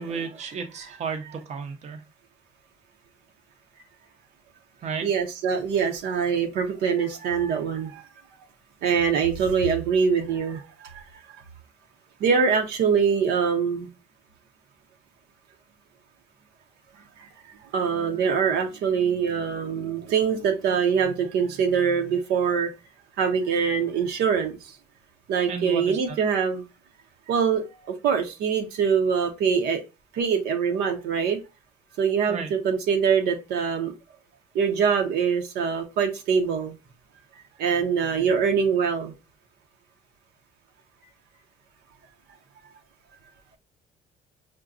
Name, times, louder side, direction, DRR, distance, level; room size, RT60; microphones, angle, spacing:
voice 1, 0.0-2.0 4.8-5.1 25.5-26.2 32.3-32.5, right 5 dB, 40° right, 0.6 m, -33 dB
voice 2, 5.0-8.1 8.8-11.4 12.2-13.9 17.2-17.3 17.7-22.7 23.2-24.7 25.3-26.6 27.3-29.8 30.1-31.4 32.0-33.9 34.5-36.7 37.6-39.1, right 6 dB, 80° right, 0.8 m, -24 dB
5.9 x 2.2 x 2.5 m
cardioid pair, 110°, 17 cm